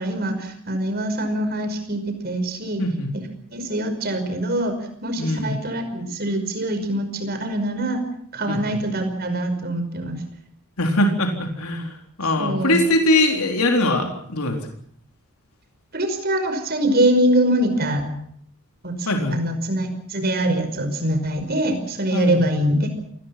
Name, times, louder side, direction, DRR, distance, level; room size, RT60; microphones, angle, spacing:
voice 1, 0.0-2.8 3.1-3.2 3.5-4.7 5.0-8.0 8.3-10.2 12.4-12.8 15.9-18.1 18.8-23.0, right 1 dB, 45° right, 7 dB, 5.5 m, -23 dB
voice 2, 2.8-3.1 5.2-5.6 8.5-8.8 10.8-14.6 19.1-19.4 22.1-22.5, left 1 dB, 90° left, 3 dB, 4.1 m, -22 dB
28.0 x 20.0 x 6.0 m, 0.67 s
head